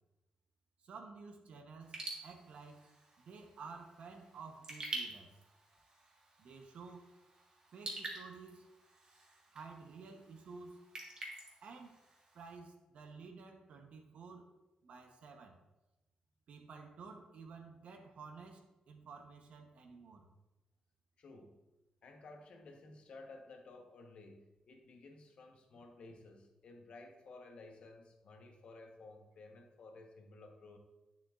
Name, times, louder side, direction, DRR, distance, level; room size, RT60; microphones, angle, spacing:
voice 1, 0.8-2.8 3.2-5.3 6.4-7.1 7.7-8.7 9.5-10.8 11.6-12.0 12.3-14.5 14.8-15.6 16.5-20.2, right 4 dB, 70° right, 4 dB, 0.9 m, -52 dB
Raindrop / Drip, 1.8-12.6, right 2 dB, 35° right, 1.5 m, -49 dB
voice 2, 21.2-21.6 22.0-30.8, left 3 dB, 55° left, 3 dB, 1.1 m, -55 dB
9.1 x 7.1 x 2.5 m, 1.0 s
wide cardioid pair, 155°, 2 cm